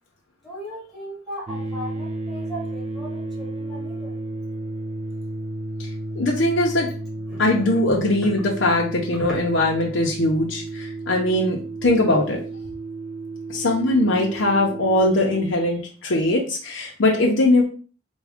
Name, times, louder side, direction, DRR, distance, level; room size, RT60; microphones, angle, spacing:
voice 1, 0.4-4.2 7.3-8.3 9.2-9.4, equal, ahead, -5 dB, 1.4 m, -37 dB
sound 1, 1.5-15.5, right 2 dB, 35° right, 0.4 m, -33 dB
voice 2, 6.2-6.9 7.4-12.4 13.5-17.6, left 1 dB, 75° left, -1 dB, 0.7 m, -21 dB
3.5 x 2.3 x 3.5 m, 0.37 s
head